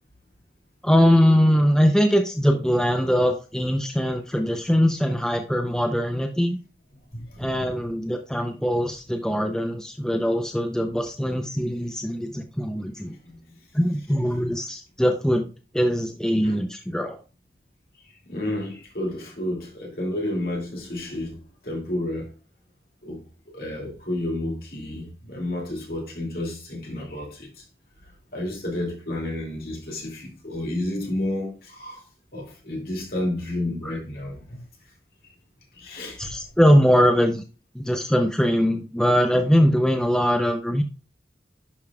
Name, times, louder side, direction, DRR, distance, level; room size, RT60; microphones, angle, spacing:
voice 1, 0.8-6.6 7.4-13.2 13.7-17.2 33.8-33.9 36.2-37.4 37.7-40.8, equal, 5° left, 0.5 m, -22 dB
voice 2, 7.1-7.7 12.2-12.4 13.2-13.4 16.4-16.5 18.3-22.3 23.0-23.2 23.5-27.6 28.3-32.0 32.3-34.6 35.7-36.3, left 1 dB, 55° left, 2.4 m, -31 dB
10.5 x 5.0 x 2.3 m
head